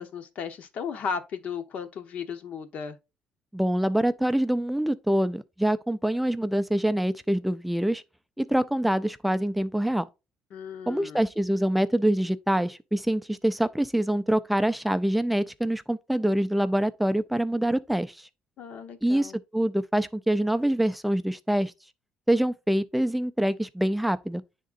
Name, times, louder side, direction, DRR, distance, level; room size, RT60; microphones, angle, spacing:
voice 1, 0.0-3.0 10.5-11.2 18.6-19.4, left 6 dB, 50° left, 0.9 m, -35 dB
voice 2, 3.5-8.0 8.4-10.1 10.9-18.3 19.0-21.7 22.3-24.4, right 1 dB, ahead, 0.4 m, -25 dB
10.5 x 3.7 x 2.4 m
cardioid pair, 150°, 3 cm